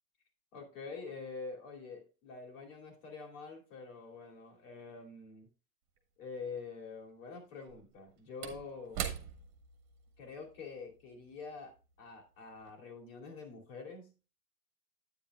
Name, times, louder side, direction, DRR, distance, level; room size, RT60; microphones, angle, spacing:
voice 1, 0.5-5.5 6.2-9.1 10.2-14.4, left 4 dB, 55° left, 1 dB, 2.9 m, -46 dB
Slam / Wood, 6.0-6.1 7.5-12.2 12.6-12.7, right 9 dB, 35° right, 1.5 m, -44 dB
10.0 x 9.0 x 2.4 m, 0.32 s
hypercardioid pair, 110°, 47 cm